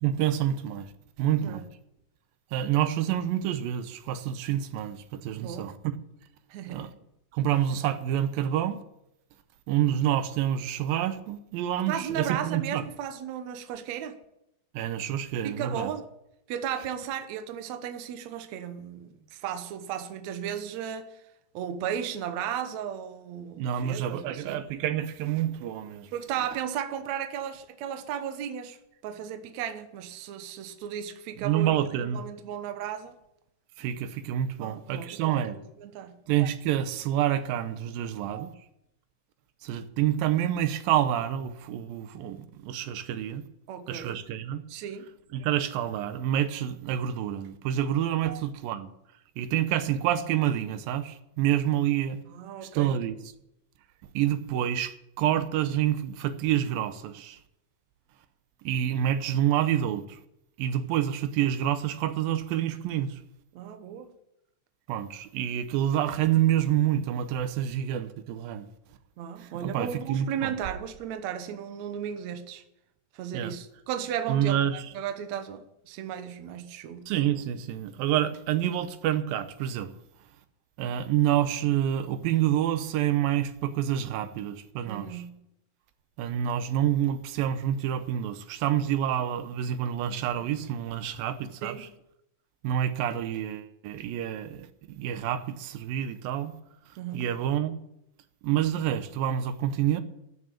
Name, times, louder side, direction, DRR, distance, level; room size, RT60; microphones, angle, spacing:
voice 1, 0.0-0.9 1.2-1.6 2.5-6.0 6.7-6.9 7.3-8.8 9.7-12.8 14.7-15.9 23.5-26.1 31.4-32.3 33.8-35.6 36.3-38.5 39.6-43.4 43.9-44.6 45.3-48.9 49.4-52.2 52.6-53.2 54.1-57.4 58.6-60.2 60.6-63.2 64.9-68.7 69.4-70.5 73.3-73.5 74.3-74.8 77.1-79.9 80.8-85.2 86.2-91.9 92.6-96.5 97.1-97.7 98.4-100.0, right 11 dB, 90° right, 2.6 m, -28 dB
voice 2, 5.4-5.7 6.5-6.9 11.9-14.2 15.4-16.1 16.5-21.2 21.5-24.6 26.1-28.8 29.0-31.9 32.1-33.2 34.6-36.2 38.3-38.5 43.7-44.2 44.7-45.1 48.2-48.4 52.3-53.0 63.5-64.1 69.2-72.6 73.1-77.1 78.2-78.3 78.7-78.8 84.9-85.4 90.4-90.5 91.6-91.9 97.0-97.4, right 9 dB, 65° right, 2.0 m, -35 dB
12.5 x 6.7 x 8.7 m
omnidirectional pair, 4.1 m